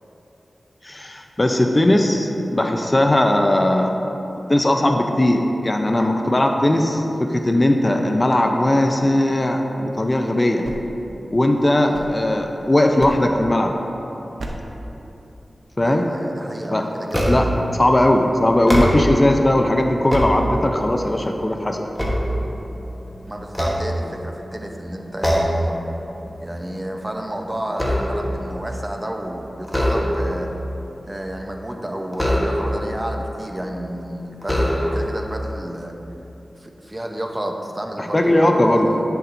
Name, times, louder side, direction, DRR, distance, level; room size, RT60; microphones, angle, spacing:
voice 1, 0.8-3.9 4.5-10.6 11.3-13.7 15.8-16.1 16.7-16.8 17.2-21.9 38.0-38.9, left 1 dB, 30° left, 3 dB, 0.5 m, -18 dB
sound 1, 10.6-12.6 13.0-13.5 14.4-14.8, right 1 dB, 80° right, 0.7 m, -35 dB
voice 2, 15.8-17.5 23.3-25.7 26.4-30.5 31.0-36.0 36.6-39.0, right 1 dB, 20° right, 2 dB, 0.7 m, -31 dB
sound 2, 17.1-17.7 18.5-19.3 19.8-20.9 21.4-22.9 23.5-24.5 25.2-25.7 26.1-26.4 26.7-28.4 29.6-30.5 32.1-32.9 33.7-33.8 34.4-35.2, equal, 5° left, 1.2 m, -22 dB
9.8 x 6.9 x 2.6 m, 3.0 s
cardioid pair, 50°, 0 cm